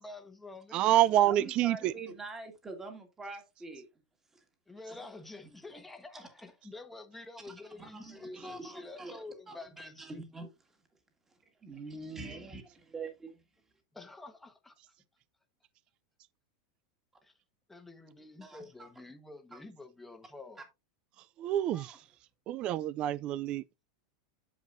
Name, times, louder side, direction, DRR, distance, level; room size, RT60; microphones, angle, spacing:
voice 1, 0.0-1.0 4.7-10.2 13.9-14.7 17.2-17.3 17.7-20.6, left 2 dB, 5° left, 1.1 m, -48 dB
voice 2, 0.7-1.9 21.4-21.9 22.5-23.6, right 12 dB, 30° right, 0.3 m, -27 dB
voice 3, 1.2-3.9 4.3-4.4 4.9-5.2 5.5-5.6 6.1-6.3 7.4-10.5 11.6-12.6 12.9-13.4 18.4-18.9 19.5-19.6 21.7-22.0, right 3 dB, 10° right, 1.8 m, -45 dB
9.1 x 7.4 x 2.6 m
supercardioid pair, 155°, 3 cm